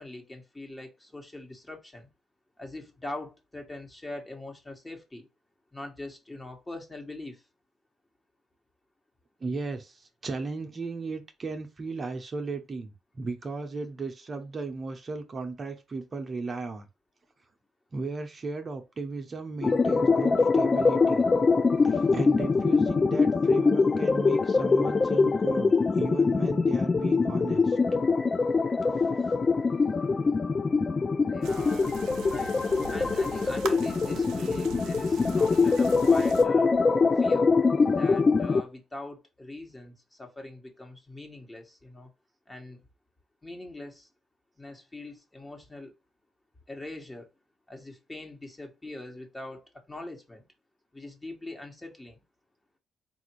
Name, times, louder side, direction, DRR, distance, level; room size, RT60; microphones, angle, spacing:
voice 1, 0.0-2.1 2.6-5.3 5.7-7.4 31.3-32.6 32.9-36.7 37.2-37.5 38.0-42.1 42.5-42.8 43.4-44.1 44.6-45.9 46.7-47.3 47.7-50.4 50.9-52.2, left 2 dB, 15° left, 1.3 m, -42 dB
voice 2, 9.4-16.8 17.9-21.3 21.8-25.7 26.0-27.8, right 3 dB, 40° right, 0.7 m, -35 dB
sound 1, 19.6-38.6, left 4 dB, 35° left, 0.4 m, -23 dB
sound 2, 31.4-36.4, right 8 dB, 90° right, 0.6 m, -41 dB
3.8 x 2.5 x 4.5 m
cardioid pair, 75°, 0 cm